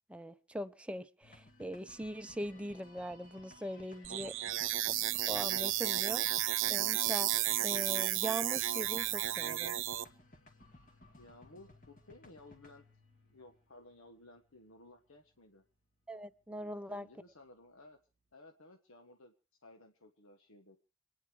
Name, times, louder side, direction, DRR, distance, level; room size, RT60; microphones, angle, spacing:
voice 1, 0.1-4.3 5.3-7.3 7.6-9.8 16.1-17.1, equal, 5° right, 10 dB, 0.7 m, -41 dB
sound 1, 1.2-18.3, left 1 dB, 40° left, 2.4 m, -60 dB
sound 2, 4.0-10.0, right 13 dB, 65° right, 0.7 m, -33 dB
voice 2, 11.2-12.8 13.2-15.6 16.5-18.0 18.3-19.3 19.6-20.8, left 2 dB, 85° left, 5 dB, 1.5 m, -57 dB
26.5 x 9.9 x 4.8 m, 0.35 s
head